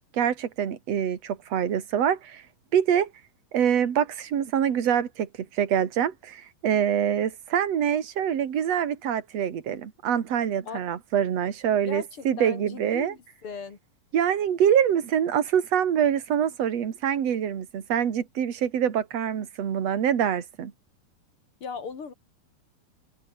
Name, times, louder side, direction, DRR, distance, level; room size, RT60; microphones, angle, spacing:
voice 1, 0.1-2.4 2.7-3.1 3.5-13.1 14.1-20.7, right 9 dB, 50° right, 3.1 m, -25 dB
voice 2, 11.9-13.8 21.6-22.1, left 5 dB, 40° left, 3.6 m, -38 dB
omnidirectional pair, 4.1 m